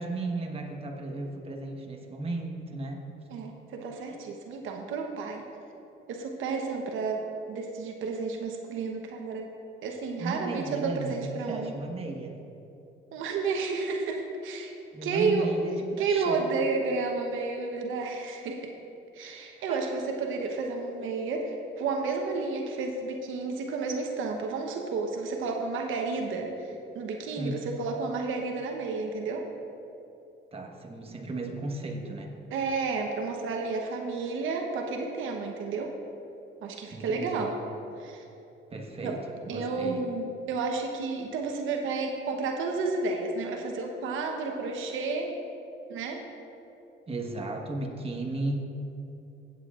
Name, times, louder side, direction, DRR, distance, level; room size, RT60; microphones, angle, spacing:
voice 1, 0.0-3.0 10.2-12.3 14.9-16.4 19.7-19.8 27.4-27.6 30.5-32.4 36.9-37.4 38.7-39.2 39.5-40.0 47.1-48.7, right 2 dB, 30° right, 1 dB, 1.3 m, -35 dB
voice 2, 3.3-5.4 6.1-7.2 7.5-9.5 9.8-11.7 13.1-14.7 15.0-15.5 16.0-18.7 19.1-29.4 32.5-35.9 36.6-37.5 38.0-38.2 39.0-39.1 39.5-45.3 45.9-46.2, right 4 dB, 85° right, 2 dB, 1.0 m, -31 dB
15.5 x 8.5 x 2.5 m, 2.9 s
cardioid pair, 90°, 20 cm